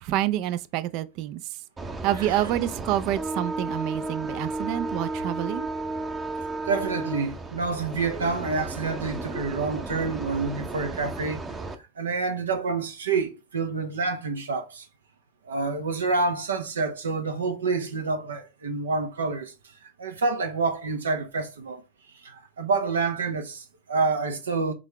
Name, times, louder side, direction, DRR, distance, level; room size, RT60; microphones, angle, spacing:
voice 1, 0.0-1.6 2.0-5.7, right 13 dB, 55° right, 0.4 m, -28 dB
sound 1, 1.8-11.7, right 2 dB, 20° right, 0.7 m, -33 dB
voice 2, 6.7-11.4 12.0-14.9 15.5-19.5 19.8-21.8 22.2-24.7, right 4 dB, 80° right, 0.7 m, -28 dB
3.9 x 3.5 x 3.2 m
hypercardioid pair, 85°, 0 cm